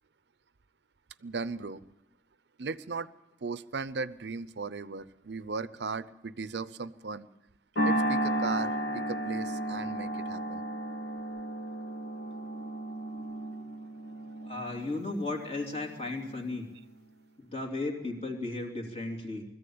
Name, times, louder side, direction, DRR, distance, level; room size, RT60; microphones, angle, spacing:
voice 1, 1.2-1.8 2.6-3.1 3.4-7.3 7.8-10.6, right 4 dB, 80° right, 16 dB, 0.7 m, -37 dB
sound 1, 7.8-16.3, right 1 dB, 75° left, 2.8 m, -33 dB
voice 2, 14.4-16.7 17.4-19.4, left 2 dB, 35° left, 3 dB, 2.9 m, -35 dB
21.0 x 14.5 x 8.6 m, 0.99 s
head